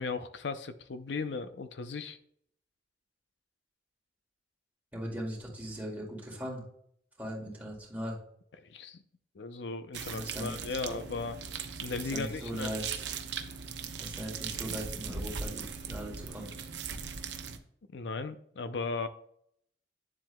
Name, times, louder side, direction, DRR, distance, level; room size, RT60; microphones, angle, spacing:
voice 1, 0.0-2.2 8.7-9.0 9.4-11.4 11.8-12.7 17.9-19.1, left 4 dB, 85° left, 10 dB, 0.6 m, -36 dB
voice 2, 4.9-6.6 7.2-8.2 10.1-11.0 12.1-12.9 14.0-16.5, equal, 10° right, -3 dB, 2.3 m, -39 dB
sound 1, 9.9-17.6, right 6 dB, 80° right, 0.8 m, -39 dB
9.7 x 7.4 x 2.3 m, 0.68 s
head